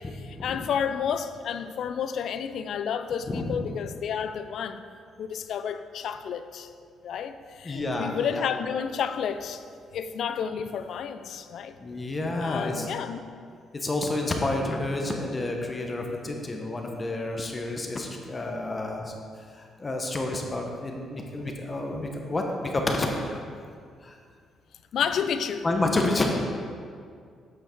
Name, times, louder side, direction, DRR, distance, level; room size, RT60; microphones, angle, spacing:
voice 1, 0.0-4.8 5.2-6.7 7.0-9.6 9.9-11.8 12.4-13.2 24.9-25.7, left 7 dB, 70° left, 11 dB, 0.4 m, -31 dB
voice 2, 3.2-3.6 7.6-8.4 11.8-12.9 13.7-19.1 19.5-23.4 24.0-24.2 25.6-26.4, left 2 dB, 30° left, 2 dB, 0.9 m, -29 dB
8.4 x 5.6 x 4.4 m, 2.2 s
cardioid pair, 90°, 0 cm